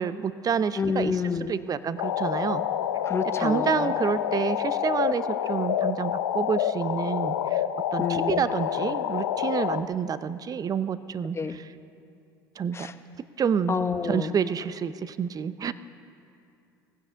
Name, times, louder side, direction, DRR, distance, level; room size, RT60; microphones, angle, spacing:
voice 1, 0.0-1.2 1.5-2.6 3.4-7.6 7.9-11.7 12.6-12.9 13.4-13.7 14.0-15.7, right 7 dB, 35° right, 15 dB, 0.6 m, -28 dB
voice 2, 0.8-1.6 3.1-3.9 8.0-8.4 11.3-11.6 12.7-12.9 13.7-14.3, left 5 dB, 25° left, 10 dB, 0.8 m, -28 dB
sound 1, 2.0-9.8, left 10 dB, 90° left, 0.6 m, -28 dB
18.5 x 15.5 x 3.7 m, 2.5 s
hypercardioid pair, 75°, 11 cm